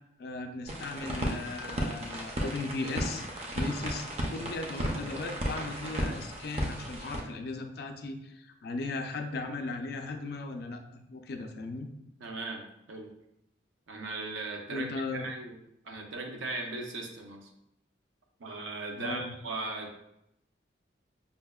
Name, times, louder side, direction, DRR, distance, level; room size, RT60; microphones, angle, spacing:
voice 1, 0.2-3.2 3.5-11.9 14.7-15.3 18.9-19.3, left 3 dB, 55° left, 5 dB, 0.3 m, -37 dB
sound 1, 0.7-7.2, equal, 35° right, 0.5 m, -34 dB
voice 2, 12.2-13.1 13.9-15.6 15.8-17.5 18.4-20.0, right 3 dB, 85° right, 2 dB, 0.6 m, -38 dB
5.4 x 2.1 x 2.2 m, 0.81 s
head